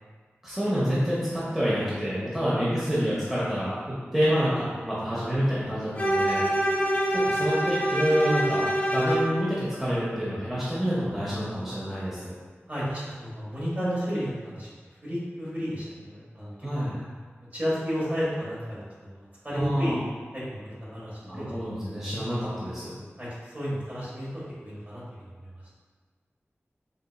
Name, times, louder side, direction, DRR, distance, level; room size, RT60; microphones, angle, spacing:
voice 1, 0.4-6.4 7.1-12.3 16.6-17.1 19.5-20.0 21.2-22.9, equal, 10° right, -9 dB, 0.8 m, -28 dB
Bowed string instrument, 6.0-9.4, right 1 dB, 30° left, 0.6 m, -25 dB
voice 2, 12.7-14.7 15.0-16.9 17.5-20.0 20.3-21.4 23.2-25.2, equal, 35° right, -9 dB, 1.4 m, -32 dB
3.8 x 2.8 x 2.3 m, 1.5 s
wide cardioid pair, 45°, 5 cm